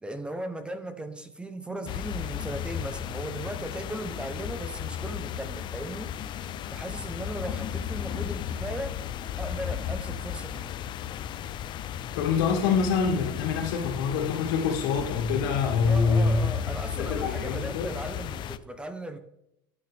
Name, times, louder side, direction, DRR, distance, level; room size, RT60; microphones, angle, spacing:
voice 1, 0.0-6.1 6.7-9.0 9.4-10.7 15.8-19.2, right 1 dB, 10° right, 10 dB, 1.0 m, -37 dB
sound 1, 1.9-18.6, left 9 dB, 45° left, 0.7 m, -34 dB
voice 2, 12.1-16.4 17.0-17.9, left 5 dB, 75° left, -1 dB, 2.6 m, -25 dB
12.0 x 9.2 x 3.6 m, 0.82 s
supercardioid pair, 105°, 11 cm